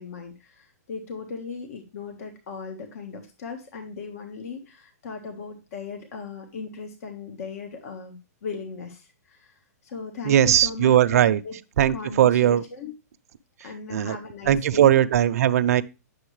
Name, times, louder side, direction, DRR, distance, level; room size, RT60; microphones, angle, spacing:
voice 1, 0.0-11.5 11.9-12.9 13.6-15.0, left 5 dB, 60° left, 1.5 m, -38 dB
voice 2, 10.3-11.4 11.8-12.6 13.9-14.2 14.5-15.8, right 11 dB, 60° right, 0.7 m, -19 dB
9.5 x 6.7 x 3.2 m
hypercardioid pair, 145°, 9 cm